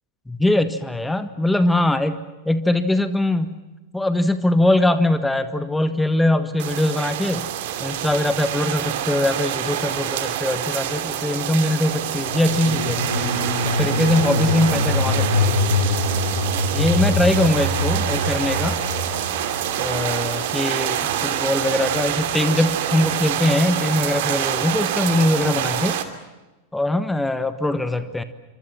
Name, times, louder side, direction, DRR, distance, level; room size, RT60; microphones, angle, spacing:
voice 1, 0.3-3.6 3.9-7.5 7.8-13.0 13.6-15.6 16.7-18.8 19.8-26.0 26.7-28.2, left 1 dB, 5° left, 11 dB, 1.4 m, -21 dB
sound 1, 6.6-26.0, right 11 dB, 50° right, 2.8 m, -26 dB
sound 2, 7.8-10.3 11.9-24.2, left 2 dB, 75° left, 6.2 m, -26 dB
28.0 x 25.5 x 7.5 m, 1.1 s
figure-of-eight pair, 90°, 0 cm